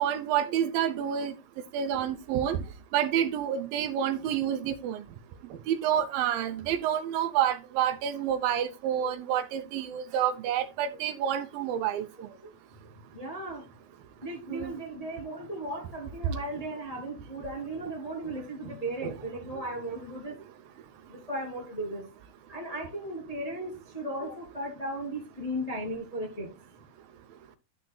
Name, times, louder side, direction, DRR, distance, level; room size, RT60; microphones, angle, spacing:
voice 1, 0.0-1.3 1.7-2.6 2.9-5.0 5.7-12.1 14.5-14.7 19.0-19.2, right 9 dB, 80° right, 2.4 m, -28 dB
voice 2, 13.1-13.6 14.2-20.4 21.1-22.0 22.5-26.5, right 1 dB, 15° left, 1.7 m, -36 dB
12.0 x 6.5 x 2.2 m
omnidirectional pair, 4.3 m